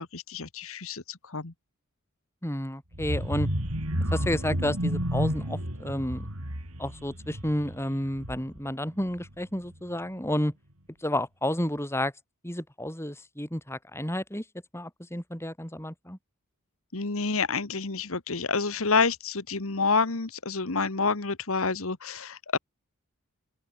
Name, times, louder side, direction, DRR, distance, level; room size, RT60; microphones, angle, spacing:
voice 1, 0.0-1.5 16.9-22.6, left 4 dB, 70° left, 1.5 m, -28 dB
voice 2, 2.4-3.5 4.1-6.3 6.8-10.5 11.0-12.1 12.4-14.4 14.7-16.2, left 1 dB, 10° left, 7.3 m, -31 dB
sound 1, 2.9-8.7 9.1-9.3 9.7-9.8, equal, 80° right, 6.9 m, -31 dB
open air
head